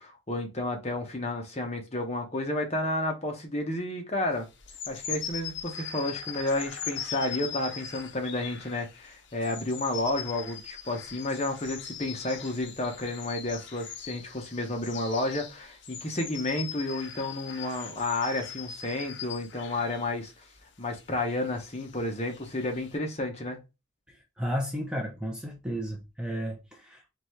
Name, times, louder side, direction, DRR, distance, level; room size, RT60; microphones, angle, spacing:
voice 1, 0.0-4.5 4.9-20.4 20.8-23.6, left 2 dB, 30° left, 1.0 m, -31 dB
sound 1, 4.5-20.1 20.9-23.0, left 8 dB, 55° left, 0.7 m, -40 dB
voice 2, 24.4-27.1, equal, 5° right, 0.7 m, -33 dB
4.0 x 3.4 x 3.2 m
head